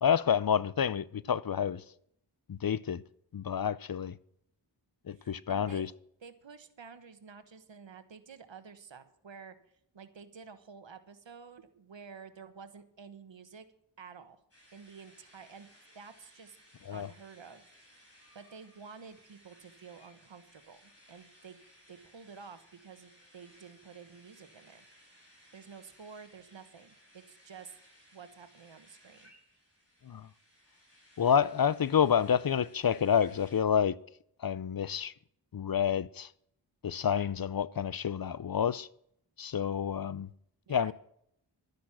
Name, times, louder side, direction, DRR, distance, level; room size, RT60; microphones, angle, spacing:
voice 1, 0.0-1.8 2.5-3.0 3.3-4.2 5.1-5.9 16.9-17.1 30.0-30.3 31.2-34.0 34.4-35.1 35.5-36.3 36.8-38.9 39.4-40.3 40.7-40.9, left 8 dB, 55° left, 0.6 m, -29 dB
voice 2, 5.1-5.9 6.2-9.6 9.9-13.7 14.0-14.4 14.7-15.7 15.9-16.6 16.9-17.6 18.3-21.6 21.9-24.9 25.5-27.8 28.1-29.3 40.7-40.9, right 6 dB, 85° right, 1.3 m, -51 dB
sound 1, 14.5-33.6, equal, 30° left, 5.5 m, -61 dB
12.5 x 10.5 x 6.1 m
wide cardioid pair, 65°, 44 cm